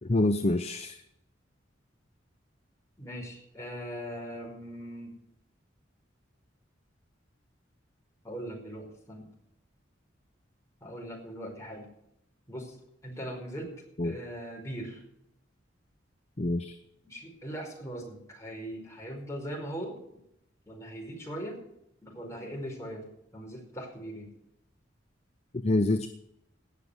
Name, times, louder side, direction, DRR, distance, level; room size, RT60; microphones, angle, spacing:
voice 1, 0.0-1.0 14.0-14.2 16.4-16.8 25.6-26.1, left 2 dB, 35° left, 9 dB, 0.7 m, -26 dB
voice 2, 3.0-5.1 8.2-9.3 10.8-11.9 12.5-12.8 13.0-13.7 14.0-15.0 17.0-20.0 20.7-21.6 22.0-23.0 23.3-24.3, right 1 dB, 15° left, -1 dB, 4.9 m, -40 dB
18.5 x 6.8 x 8.0 m, 0.79 s
head